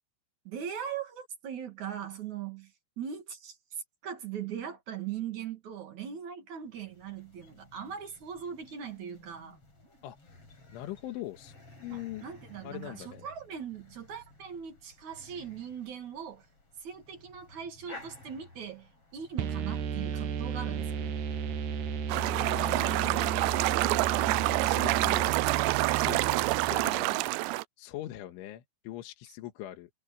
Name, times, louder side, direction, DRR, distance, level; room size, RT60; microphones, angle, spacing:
voice 1, 0.4-9.6 11.9-16.5 16.8-21.1, right 8 dB, 50° right, 2.7 m, -40 dB
sound 1, 6.6-24.3, left 2 dB, 30° left, 8.2 m, -55 dB
voice 2, 10.0-10.4 10.7-12.3 12.6-13.3 22.1-23.3 24.2-25.2 25.9-27.3 27.8-29.9, left 14 dB, 80° left, 3.8 m, -42 dB
sound 2, 19.4-27.1, right 7 dB, 65° right, 1.9 m, -34 dB
sound 3, 22.1-27.6, right 21 dB, 85° right, 2.5 m, -27 dB
omnidirectional pair, 5.6 m